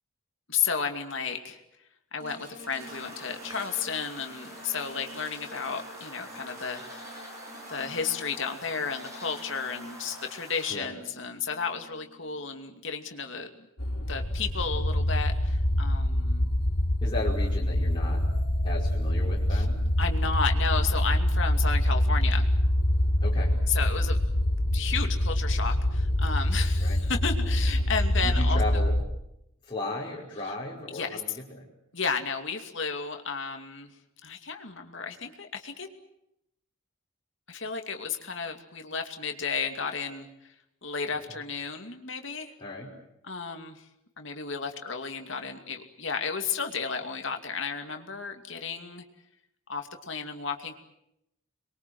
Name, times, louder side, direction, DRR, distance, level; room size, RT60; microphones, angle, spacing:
voice 1, 0.5-1.6 2.1-7.1 7.7-13.5 14.1-16.6 19.5-19.7 20.0-22.5 23.7-24.2 24.7-28.6 30.5-30.6 30.9-31.2 31.9-33.9 34.2-35.9 37.5-40.3 40.8-42.5 43.2-43.8 44.2-49.0 49.7-50.7, left 5 dB, 60° left, 5 dB, 2.6 m, -33 dB
sound 1, 2.2-12.6 13.1-13.2, equal, 40° right, 5.5 m, -49 dB
sound 2, 2.8-10.7, equal, 15° right, 7.8 m, -45 dB
sound 3, 13.8-29.0, left 1 dB, 90° left, 3.8 m, -25 dB
voice 2, 17.0-18.2 18.6-19.8 23.2-23.6 26.8-27.0 28.2-29.0 29.6-31.7 42.6-42.9, left 2 dB, 20° left, -5 dB, 5.0 m, -35 dB
27.0 x 22.5 x 7.9 m, 0.82 s
head